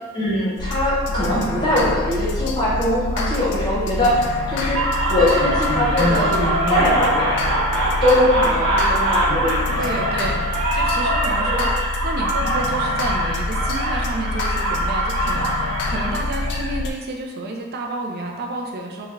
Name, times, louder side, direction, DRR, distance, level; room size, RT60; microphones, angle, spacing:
voice 1, 0.1-4.8 5.1-6.4 6.7-7.4 8.0-9.8, left 1 dB, 20° left, -8 dB, 0.8 m, -21 dB
sound 1, 0.6-16.9, left 2 dB, 50° left, 0.3 m, -27 dB
sound 2, 4.7-16.7, right 1 dB, 70° right, 1.0 m, -23 dB
voice 2, 9.7-10.4 10.7-19.1, right 2 dB, 45° right, 1 dB, 0.4 m, -30 dB
3.5 x 2.2 x 3.2 m, 1.4 s
head